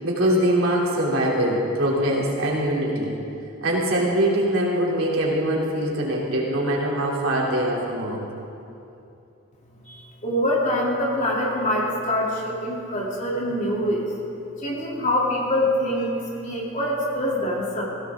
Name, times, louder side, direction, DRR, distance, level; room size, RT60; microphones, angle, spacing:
voice 1, 0.0-3.1 3.6-8.2, right 1 dB, 90° right, -4 dB, 3.0 m, -23 dB
voice 2, 9.8-14.1 14.6-17.8, left 1 dB, 35° left, -4 dB, 2.9 m, -25 dB
17.5 x 16.5 x 3.7 m, 2.7 s
head